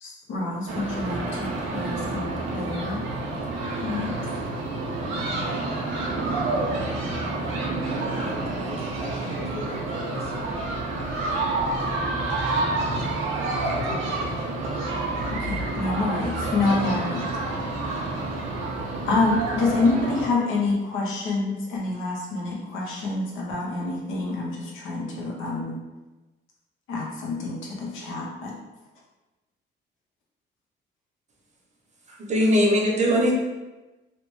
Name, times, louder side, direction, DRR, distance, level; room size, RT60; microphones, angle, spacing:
voice 1, 0.0-3.1 3.8-4.2 15.3-17.2 19.1-25.8 26.9-28.6, left 3 dB, 85° left, -3 dB, 0.7 m, -27 dB
sound 1, 0.7-20.3, right 2 dB, 90° right, 0.6 m, -28 dB
voice 2, 7.8-10.4 12.7-13.1 13.5-14.5 16.6-17.0, left 2 dB, 30° left, -4 dB, 1.1 m, -38 dB
voice 3, 32.1-33.3, equal, 35° right, -1 dB, 0.7 m, -20 dB
2.8 x 2.0 x 3.0 m, 1.1 s
cardioid pair, 90°, 20 cm